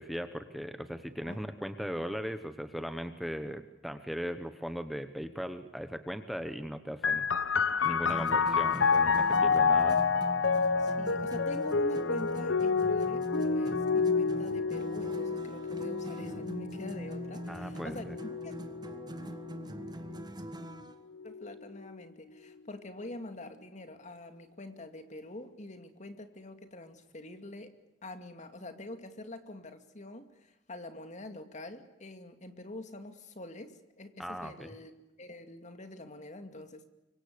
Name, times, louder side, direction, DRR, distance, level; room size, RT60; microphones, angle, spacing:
voice 1, 0.0-10.0 17.5-18.2 34.2-34.7, equal, ahead, 9 dB, 1.0 m, -38 dB
sound 1, 7.0-20.3 21.1-21.9, left 5 dB, 85° left, 1.2 m, -29 dB
sound 2, 7.8-21.0, equal, 20° right, 1.5 m, -42 dB
voice 2, 10.8-18.5 21.2-27.7 28.0-34.9 35.2-36.9, left 1 dB, 40° left, 8 dB, 2.5 m, -45 dB
25.5 x 24.0 x 6.8 m, 0.98 s
head